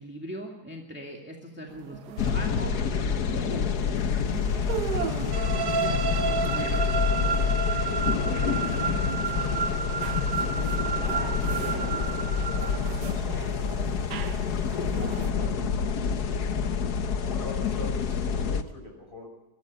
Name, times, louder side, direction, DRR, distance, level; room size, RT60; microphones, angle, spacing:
voice 1, 0.0-4.3 4.9-5.9 6.3-6.9 17.0-17.3, right 1 dB, 5° right, 0 dB, 2.1 m, -40 dB
sound 1, 1.7-15.3, right 9 dB, 75° right, 1.5 m, -39 dB
sound 2, 2.2-18.6, left 6 dB, 70° left, 1.6 m, -28 dB
sound 3, 5.3-13.1, right 5 dB, 55° right, 1.7 m, -31 dB
voice 2, 7.9-10.9 11.4-16.6 17.1-19.3, left 1 dB, 30° left, 2 dB, 5.6 m, -45 dB
22.5 x 13.5 x 8.6 m, 0.94 s
omnidirectional pair, 1.8 m